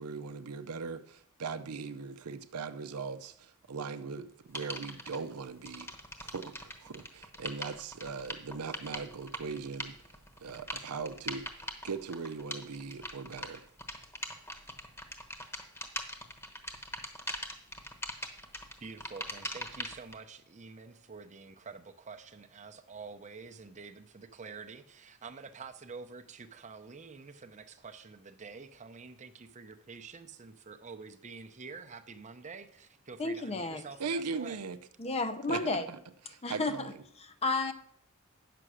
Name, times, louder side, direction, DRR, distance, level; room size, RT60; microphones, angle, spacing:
voice 1, 0.0-5.9 6.2-9.9 10.4-13.7 34.0-34.8 35.5-36.0 36.3-36.9, right 5 dB, 85° right, 0.6 m, -39 dB
sound 1, 4.5-5.2 5.6-20.1, left 1 dB, 10° left, 1.1 m, -41 dB
voice 2, 18.8-34.6, right 4 dB, 30° right, 0.7 m, -48 dB
voice 3, 33.2-33.8 35.0-35.9 36.4-36.9 37.2-37.7, left 3 dB, 30° left, 0.6 m, -32 dB
9.0 x 6.9 x 6.2 m
head